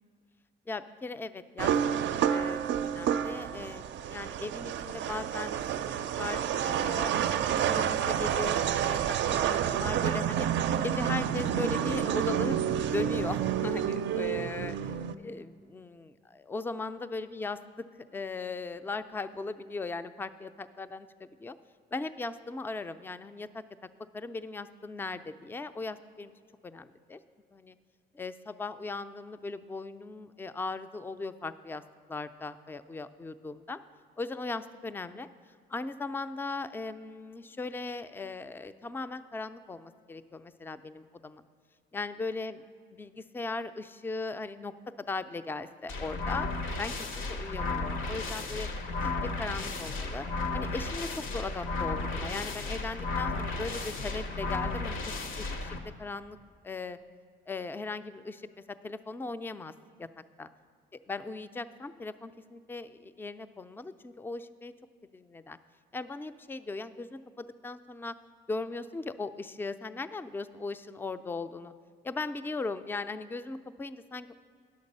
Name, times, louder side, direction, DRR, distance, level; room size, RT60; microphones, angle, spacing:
voice 1, 0.7-1.8 2.3-7.1 7.5-10.5 10.8-14.9 15.2-17.6 18.1-21.1 21.4-21.6 21.9-23.6 24.1-26.3 26.6-27.2 27.5-27.8 28.1-31.8 32.1-33.8 34.2-35.3 35.7-41.4 41.9-42.5 43.0-43.1 43.3-46.5 46.8-48.7 49.0-50.3 50.5-56.4 56.6-57.0 57.5-58.5 58.8-59.7 60.0-60.1 60.4-60.5 61.1-64.7 65.1-65.6 65.9-68.2 68.5-71.7 72.0-74.3, left 3 dB, 10° left, 12 dB, 0.3 m, -38 dB
sound 1, 1.6-15.1, right 9 dB, 65° right, 0.4 m, -29 dB
sound 2, 45.9-55.8, left 3 dB, 85° left, 1.0 m, -34 dB
10.5 x 6.6 x 5.3 m, 2.1 s
cardioid pair, 90°, 20 cm